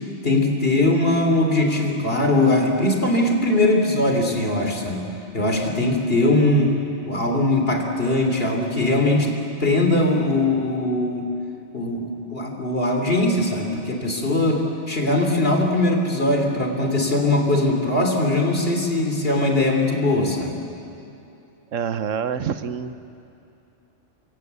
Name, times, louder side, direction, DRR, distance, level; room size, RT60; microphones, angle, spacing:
voice 1, 0.2-5.0 5.3-6.8 7.1-9.3 9.6-11.3 11.7-20.5, left 2 dB, 50° left, 3 dB, 3.4 m, -20 dB
voice 2, 21.7-23.0, right 7 dB, 85° right, 12 dB, 1.3 m, -26 dB
27.0 x 23.5 x 8.3 m, 2.7 s
omnidirectional pair, 1.3 m